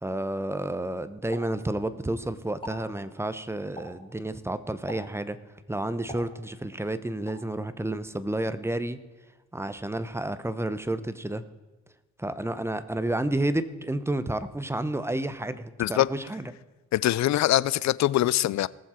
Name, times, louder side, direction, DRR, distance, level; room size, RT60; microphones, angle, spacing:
voice 1, 0.0-5.4 5.7-9.0 9.5-11.4 12.2-16.5, right 1 dB, 10° right, 0.9 m, -30 dB
Explosion, 1.3-2.2 2.5-2.9 3.8-4.1 4.9-5.3 6.1-6.8 7.3-7.5, equal, 15° left, 4.2 m, -43 dB
voice 2, 16.9-18.7, left 14 dB, 65° left, 0.5 m, -23 dB
19.5 x 7.3 x 4.4 m
cardioid pair, 90°, 30 cm